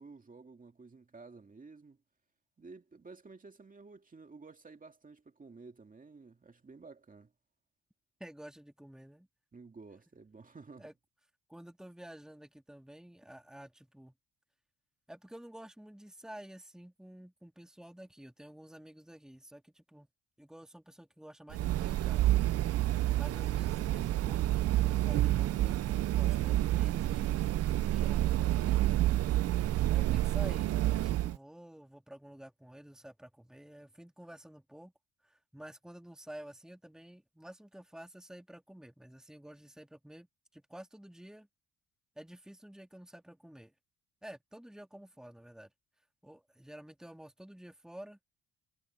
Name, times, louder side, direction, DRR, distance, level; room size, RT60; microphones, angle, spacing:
voice 1, 0.0-2.0 2.6-7.3 9.5-10.9, right 4 dB, 25° right, 2.4 m, -52 dB
voice 2, 8.2-9.3 10.8-10.9 11.5-14.1 15.1-20.1 20.4-22.4 22.8-29.2 29.4-34.9 35.2-40.3 40.5-41.5 42.2-43.7 44.2-45.7 46.2-48.2, right 1 dB, ahead, 2.2 m, -51 dB
sound 1, 21.5-31.4, right 14 dB, 55° right, 0.5 m, -29 dB
cardioid pair, 90°, 30 cm